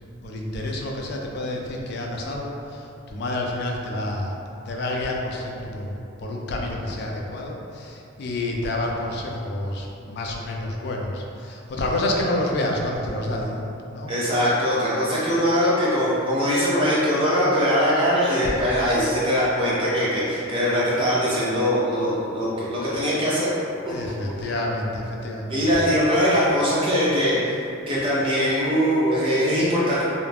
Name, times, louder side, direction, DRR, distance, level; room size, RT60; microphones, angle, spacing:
voice 1, 0.2-4.4 4.7-5.9 6.2-14.2 23.9-25.8, left 1 dB, 55° left, 0 dB, 0.3 m, -29 dB
voice 2, 14.1-23.5 25.5-27.6 27.9-30.0, equal, 25° right, -8 dB, 0.6 m, -21 dB
2.3 x 2.1 x 3.3 m, 2.7 s
head